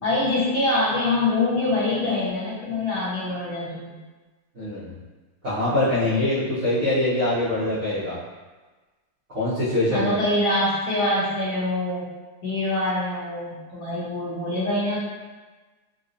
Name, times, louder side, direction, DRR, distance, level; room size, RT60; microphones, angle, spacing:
voice 1, 0.0-3.9 9.9-12.1 12.4-15.0, left 2 dB, 55° left, -10 dB, 1.5 m, -24 dB
voice 2, 4.5-5.0 5.4-8.2 9.3-10.2, left 1 dB, 55° right, -14 dB, 0.8 m, -23 dB
4.0 x 2.3 x 2.6 m, 1.3 s
omnidirectional pair, 2.4 m